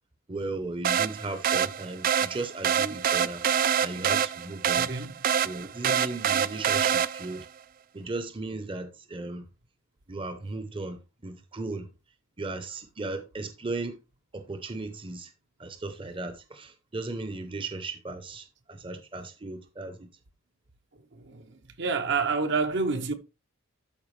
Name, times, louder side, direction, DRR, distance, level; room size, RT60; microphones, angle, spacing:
voice 1, 0.3-3.4 3.8-4.9 5.4-7.5 7.9-9.4 10.1-11.9 12.4-14.0 14.3-15.3 15.6-20.1, right 2 dB, 25° right, 0.7 m, -36 dB
sound 1, 0.8-7.4, right 8 dB, 45° right, 0.3 m, -26 dB
voice 2, 4.8-5.1 21.1-23.1, right 4 dB, 60° right, 0.9 m, -28 dB
12.5 x 4.7 x 3.2 m
head